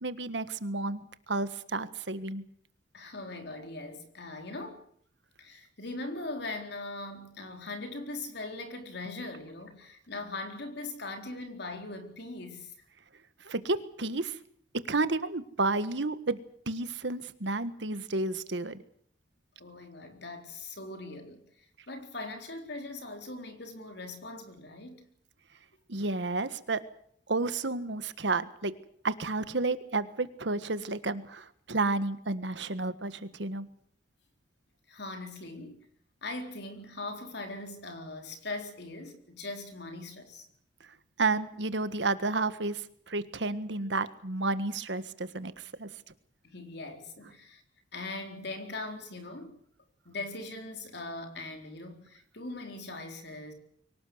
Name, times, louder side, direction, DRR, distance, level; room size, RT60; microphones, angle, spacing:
voice 1, 0.0-1.0 1.3-2.4 13.4-14.4 14.9-16.4 16.7-18.8 25.9-26.8 27.3-28.7 29.0-33.7 41.2-45.9, right 3 dB, 75° right, 1.6 m, -31 dB
voice 2, 2.9-4.8 5.4-12.7 19.6-21.4 21.9-25.0 34.9-35.8 36.2-40.5 46.4-47.6 47.9-49.5 50.1-53.5, left 2 dB, 65° left, 4.1 m, -40 dB
24.0 x 18.5 x 8.0 m
head